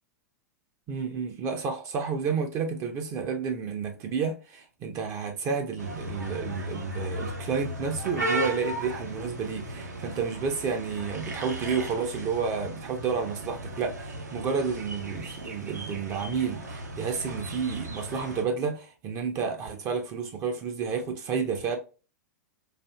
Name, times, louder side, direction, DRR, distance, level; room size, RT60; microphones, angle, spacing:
voice 1, 0.9-21.8, right 6 dB, 35° right, 0.6 m, -31 dB
sound 1, 5.8-18.4, right 1 dB, 80° right, 1.0 m, -36 dB
4.2 x 2.7 x 2.2 m
figure-of-eight pair, 100°, 9 cm